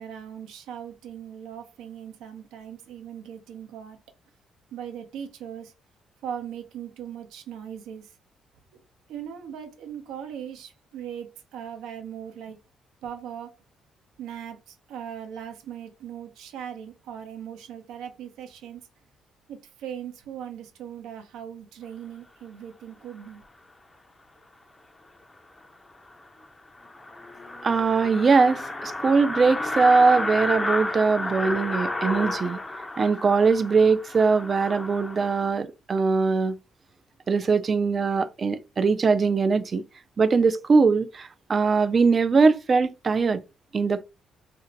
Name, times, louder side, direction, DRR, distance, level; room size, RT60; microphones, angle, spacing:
voice 1, 0.0-4.0 4.7-5.7 6.2-8.1 9.1-12.6 13.0-13.6 14.2-18.8 19.5-23.4, right 9 dB, 90° right, 0.7 m, -39 dB
sound 1, 25.6-25.7 26.1-26.2 26.4-26.5 26.8-35.5, left 2 dB, 15° left, 0.5 m, -31 dB
voice 2, 27.6-32.6 33.0-36.6 37.3-39.8 40.2-43.4 43.7-44.0, right 4 dB, 40° right, 0.4 m, -21 dB
2.6 x 2.1 x 3.9 m
cardioid pair, 90°, 0 cm